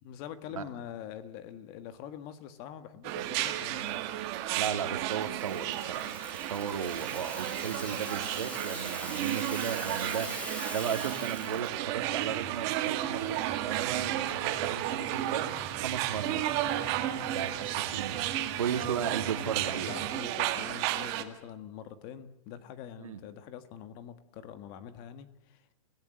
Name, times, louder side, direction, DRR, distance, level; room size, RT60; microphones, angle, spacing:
voice 1, 0.0-4.0 17.1-17.5 19.9-25.8, left 9 dB, 30° left, 11 dB, 1.6 m, -45 dB
sound 1, 3.0-21.2, right 14 dB, 30° right, 1.9 m, -33 dB
voice 2, 4.5-6.2 6.5-10.3 10.7-16.5 17.3-18.3 18.6-19.9 23.0-23.2, right 7 dB, 85° right, 7 dB, 2.9 m, -35 dB
Rattle (instrument), 4.9-11.8, left 1 dB, 5° left, 3.0 m, -43 dB
sound 2, 12.0-20.1, right 6 dB, 10° right, 3.7 m, -42 dB
29.0 x 17.0 x 7.8 m, 0.84 s
hypercardioid pair, 165°, 17 cm